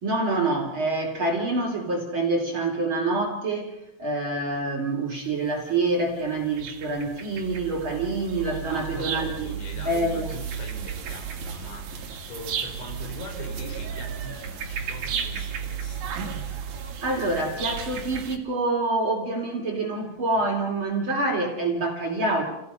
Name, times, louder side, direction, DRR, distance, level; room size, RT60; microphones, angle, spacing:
voice 1, 0.0-3.7 4.0-10.3 17.0-22.4, right 2 dB, 35° right, 0 dB, 3.1 m, -26 dB
sound 1, 4.5-4.6 5.5-18.4, right 7 dB, 60° right, 3.7 m, -34 dB
voice 2, 8.7-16.1, left 2 dB, 85° left, 2 dB, 6.4 m, -42 dB
29.5 x 17.5 x 5.6 m, 0.87 s
omnidirectional pair, 5.1 m